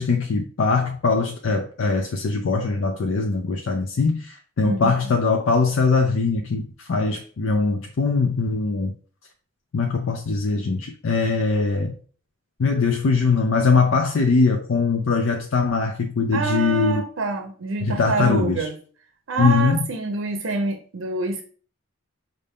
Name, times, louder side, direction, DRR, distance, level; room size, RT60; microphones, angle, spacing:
voice 1, 0.0-8.9 9.7-12.0 12.6-17.0 17.8-18.7 19.4-19.8, left 4 dB, 80° left, 0.5 m, -21 dB
voice 2, 4.6-5.1 16.3-18.7 19.3-21.4, right 3 dB, 80° right, 0.6 m, -26 dB
5.4 x 2.6 x 3.5 m
head